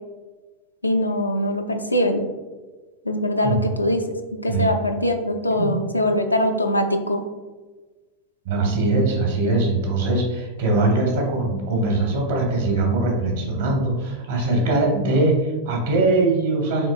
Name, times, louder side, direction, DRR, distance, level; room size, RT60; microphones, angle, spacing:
voice 1, 0.8-2.2 3.1-4.0 4.4-7.2, left 1 dB, 85° left, 5 dB, 0.4 m, -22 dB
voice 2, 8.4-16.9, right 2 dB, 55° right, 0 dB, 1.2 m, -21 dB
7.2 x 3.1 x 2.4 m, 1.3 s
figure-of-eight pair, 90°, 0 cm